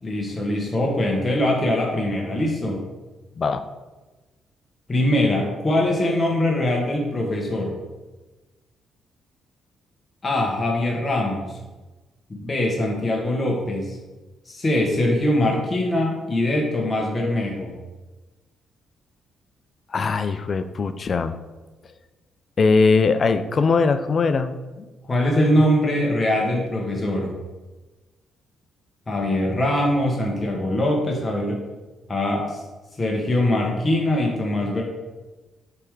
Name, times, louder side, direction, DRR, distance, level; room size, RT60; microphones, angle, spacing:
voice 1, 0.0-2.8 4.9-7.7 10.2-11.5 12.3-14.0 14.5-17.7 25.1-27.3 29.1-31.6 32.1-32.6 33.0-34.8, left 1 dB, 25° left, -1 dB, 1.2 m, -22 dB
voice 2, 19.9-21.3 22.6-24.9, left 4 dB, 45° left, 10 dB, 0.4 m, -21 dB
6.8 x 3.4 x 4.9 m, 1.2 s
cardioid pair, 90°, 0 cm